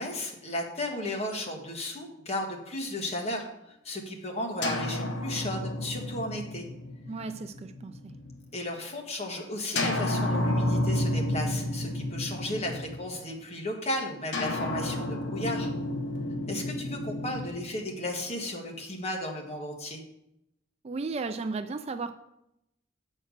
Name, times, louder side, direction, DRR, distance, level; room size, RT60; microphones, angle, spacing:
voice 1, 0.0-6.6 8.5-15.7 16.5-20.0, left 1 dB, 35° left, 1 dB, 1.4 m, -34 dB
sound 1, 4.6-8.4 9.8-13.3 14.3-18.5, left 1 dB, 65° left, 1.1 m, -31 dB
voice 2, 7.1-8.1 20.8-22.1, right 3 dB, 35° right, 9 dB, 0.4 m, -35 dB
7.8 x 4.4 x 6.5 m, 0.84 s
head